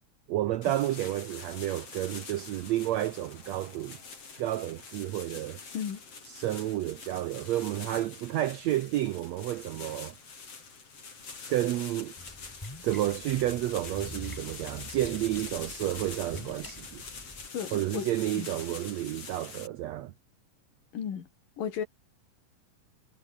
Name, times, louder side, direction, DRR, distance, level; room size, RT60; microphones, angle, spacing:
voice 1, 0.3-4.0 4.4-5.6 6.2-10.2 11.5-12.1 12.8-17.0 17.7-20.1, right 14 dB, 80° right, 1.6 m, -31 dB
sound 1, 0.6-19.7, left 5 dB, 45° left, 5.1 m, -45 dB
Splash splatter, 12.2-17.5, left 1 dB, 5° left, 2.0 m, -46 dB
voice 2, 17.5-18.1 18.3-18.5 20.9-21.3 21.6-21.9, left 8 dB, 75° left, 4.4 m, -34 dB
omnidirectional pair, 3.9 m